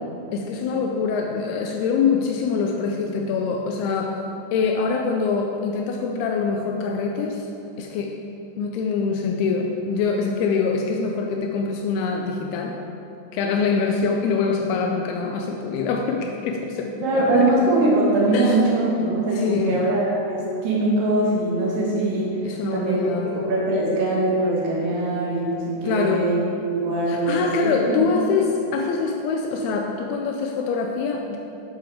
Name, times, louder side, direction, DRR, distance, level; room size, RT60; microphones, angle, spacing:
voice 1, 0.3-4.2 4.5-7.5 7.8-8.2 8.6-12.8 13.3-17.4 18.3-18.6 19.3-19.9 22.4-23.5 25.8-26.3 27.1-31.4, left 5 dB, 90° left, 2 dB, 2.2 m, -24 dB
voice 2, 17.0-22.3 22.7-26.4 26.7-28.0, right 2 dB, 60° right, -5 dB, 1.6 m, -22 dB
9.5 x 7.5 x 3.4 m, 2.9 s
omnidirectional pair, 5.1 m